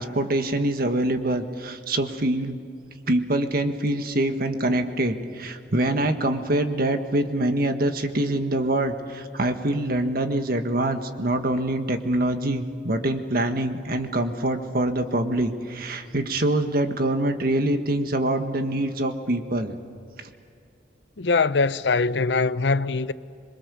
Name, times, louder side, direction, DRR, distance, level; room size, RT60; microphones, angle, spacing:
voice 1, 0.0-2.6 3.1-19.8, right 1 dB, 60° right, 1.7 m, -25 dB
voice 2, 21.2-23.1, left 4 dB, 90° left, 0.7 m, -22 dB
26.0 x 23.0 x 7.0 m
head